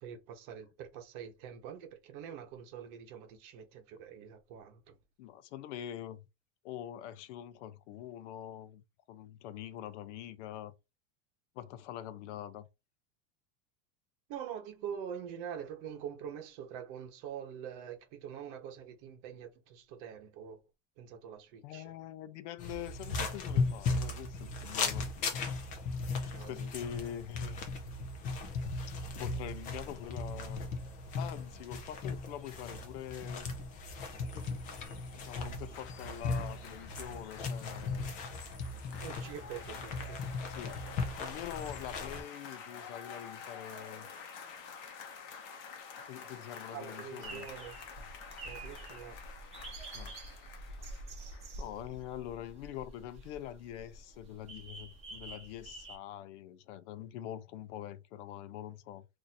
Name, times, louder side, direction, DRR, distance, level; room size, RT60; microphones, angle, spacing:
voice 1, 0.0-5.0 14.3-20.6 21.0-22.0 26.3-26.9 39.0-40.2 46.7-47.8 48.4-49.2, right 8 dB, 45° right, 0.9 m, -45 dB
voice 2, 5.2-6.3 6.6-10.7 11.6-12.7 21.6-25.1 26.5-27.7 29.1-30.6 31.2-33.5 34.3-34.5 35.1-38.2 40.4-40.8 41.2-44.1 46.1-47.5 48.0-48.1 49.9-50.2 51.6-59.1, left 11 dB, 85° left, 0.6 m, -44 dB
sound 1, 22.6-42.2, left 3 dB, 25° left, 0.4 m, -37 dB
sound 2, 35.7-52.0 52.3-52.4, left 6 dB, 55° left, 0.9 m, -49 dB
sound 3, 47.2-56.0, right 2 dB, 20° right, 0.9 m, -47 dB
2.6 x 2.5 x 4.1 m
supercardioid pair, 175°, 35 cm